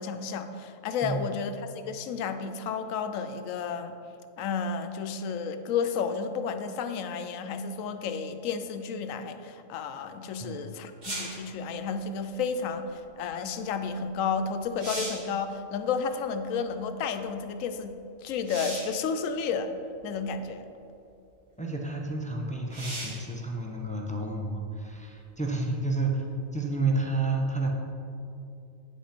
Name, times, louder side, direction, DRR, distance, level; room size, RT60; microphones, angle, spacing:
voice 1, 0.0-3.9 4.4-17.9 18.2-19.7 20.0-20.6, left 5 dB, 85° left, 9 dB, 1.0 m, -32 dB
sound 1, 11.0-11.5 14.1-14.2 14.6-15.3 18.4-19.0 20.0-20.1 22.7-23.3 26.9-27.0, right 1 dB, 35° right, 1.7 m, -36 dB
voice 2, 21.6-26.2 26.5-27.7, right 3 dB, 10° left, -1 dB, 0.4 m, -30 dB
8.6 x 5.3 x 5.1 m, 2.7 s
omnidirectional pair, 1.3 m